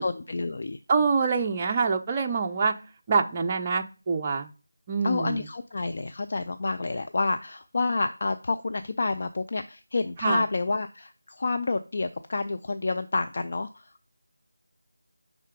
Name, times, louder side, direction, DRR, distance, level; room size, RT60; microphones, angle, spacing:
voice 1, 0.0-0.8 5.0-13.8, left 3 dB, 45° left, 7 dB, 0.4 m, -29 dB
voice 2, 0.9-2.7 3.1-4.5 4.9-5.4 10.2-10.4, right 5 dB, 20° right, 3 dB, 0.5 m, -25 dB
5.5 x 3.7 x 5.1 m, 0.34 s
figure-of-eight pair, 170°, 0 cm